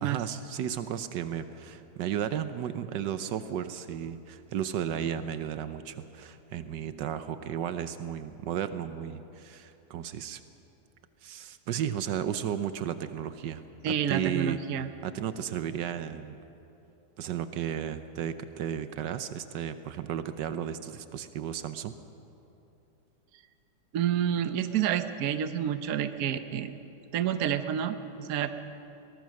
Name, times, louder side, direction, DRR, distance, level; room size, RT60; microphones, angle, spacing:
voice 1, 0.0-10.4 11.2-14.6 15.0-16.4 17.2-21.9, right 9 dB, 80° right, 11 dB, 1.4 m, -34 dB
voice 2, 13.8-14.9 23.9-26.7 27.1-28.5, right 9 dB, 60° right, 10 dB, 1.3 m, -29 dB
23.0 x 18.5 x 6.4 m, 2.9 s
omnidirectional pair, 1.9 m